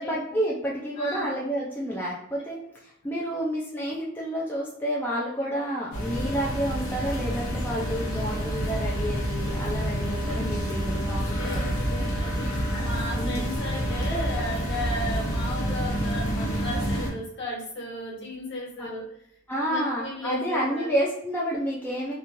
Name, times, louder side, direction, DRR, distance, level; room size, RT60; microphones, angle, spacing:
voice 1, 0.0-11.6 11.9-12.0 13.1-13.6 18.8-18.9 19.5-22.1, equal, 10° left, -5 dB, 0.4 m, -30 dB
voice 2, 1.0-1.4 11.1-19.0 19.5-20.9, left 1 dB, 55° left, -5 dB, 1.2 m, -35 dB
sound 1, 5.9-17.1, equal, 85° left, 0.8 m, -28 dB
3.0 x 2.3 x 2.5 m, 0.71 s
head